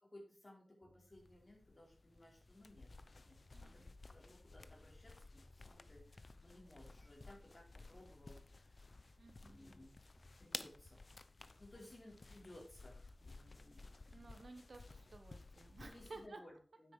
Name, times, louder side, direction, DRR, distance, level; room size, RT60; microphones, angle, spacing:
voice 1, 0.0-2.9 3.2-9.1 9.4-9.9 10.4-11.0 11.3-13.8 14.1-14.4 15.8-16.9, left 1 dB, 40° left, -1 dB, 4.6 m, -60 dB
sound 1, 0.8-1.4 1.9-5.1 5.3-6.2 6.7-9.9 10.1-10.4, equal, 15° left, 5.7 m, -69 dB
sound 2, 1.1-16.3, left 3 dB, 65° left, 0.7 m, -56 dB
voice 2, 3.5-4.0 9.2-9.6 11.8-11.9 14.1-16.4, right 3 dB, 90° right, 6 dB, 1.4 m, -56 dB
9.7 x 8.2 x 5.0 m, 0.41 s
wide cardioid pair, 70°, 0 cm